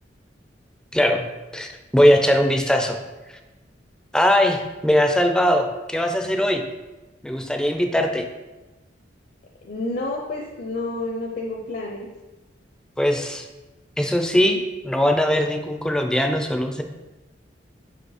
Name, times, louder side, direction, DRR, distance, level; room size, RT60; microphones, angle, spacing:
voice 1, 0.9-1.2 1.5-3.0 4.1-6.6 7.2-8.2 13.0-13.5 14.0-16.8, equal, 5° left, 5 dB, 0.4 m, -20 dB
voice 2, 9.6-12.1, left 2 dB, 55° left, 0 dB, 0.6 m, -29 dB
5.0 x 4.0 x 4.9 m, 1.1 s
head